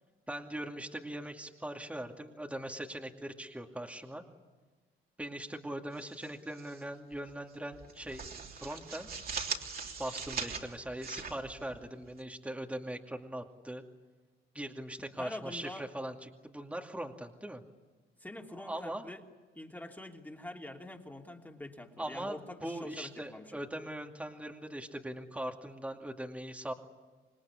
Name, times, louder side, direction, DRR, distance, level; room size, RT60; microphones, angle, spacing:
voice 1, 0.3-4.2 5.2-8.3 8.5-9.1 10.0-13.8 14.5-17.6 18.5-19.1 22.0-26.7, right 1 dB, 5° right, 3 dB, 2.4 m, -41 dB
sound 1, 5.9-6.8 7.1-7.3 7.7-12.2, right 5 dB, 50° right, 3.4 m, -41 dB
voice 2, 15.2-15.9 18.2-19.2 19.5-23.6, left 1 dB, 10° left, 2 dB, 3.0 m, -45 dB
26.5 x 20.0 x 9.8 m, 1.3 s
cardioid pair, 90°, 20 cm